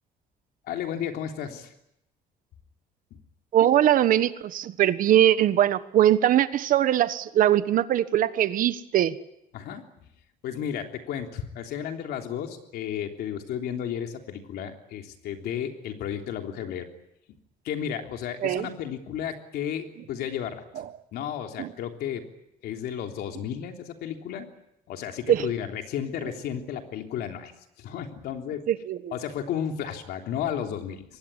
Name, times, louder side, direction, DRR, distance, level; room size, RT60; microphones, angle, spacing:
voice 1, 0.7-1.7 9.5-9.8 10.4-16.9 17.3-17.4 17.6-20.6 21.1-22.2 22.6-24.5 24.9-27.5 27.8-28.7 29.1-31.0, left 9 dB, 80° left, 4 dB, 3.4 m, -33 dB
voice 2, 3.5-9.1 18.4-18.7 21.6-21.7 25.3-25.5 28.7-29.0, right 11 dB, 55° right, 13 dB, 1.3 m, -21 dB
24.0 x 19.5 x 9.9 m, 0.82 s
cardioid pair, 150°, 16 cm